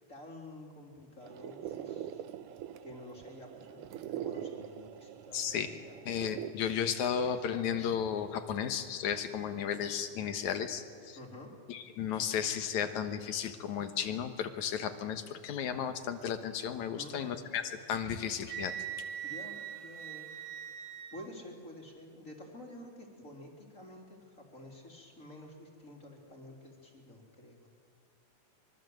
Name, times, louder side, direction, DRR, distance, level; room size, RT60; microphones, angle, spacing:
voice 1, 0.1-2.2 2.8-6.0 11.1-11.5 17.0-17.5 19.2-20.3 21.1-27.7, left 1 dB, 25° left, 1 dB, 3.6 m, -50 dB
sound 1, 1.2-6.5, right 11 dB, 85° right, 2.3 m, -43 dB
voice 2, 5.3-5.7 6.1-11.2 11.7-17.6 17.9-18.7, left 8 dB, 70° left, 8 dB, 2.6 m, -34 dB
Wind instrument woodwind instrument, 18.5-21.3, right 9 dB, 70° right, 2.1 m, -41 dB
24.5 x 24.0 x 7.8 m, 2.1 s
omnidirectional pair, 3.5 m